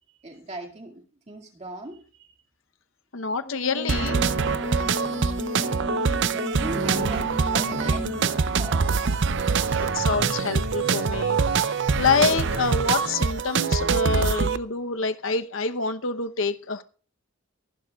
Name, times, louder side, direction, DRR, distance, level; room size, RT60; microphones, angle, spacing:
voice 1, 0.2-2.3 5.7-8.9, right 2 dB, 30° right, 2.2 m, -38 dB
voice 2, 3.1-4.2 9.8-16.8, left 4 dB, 65° left, 0.8 m, -27 dB
Singing, 3.4-8.3, left 1 dB, 20° left, 0.6 m, -34 dB
sound 1, 3.9-14.6, right 5 dB, 55° right, 0.6 m, -24 dB
sound 2, 7.6-13.1, right 1 dB, 85° right, 6.7 m, -37 dB
27.0 x 11.0 x 2.3 m
head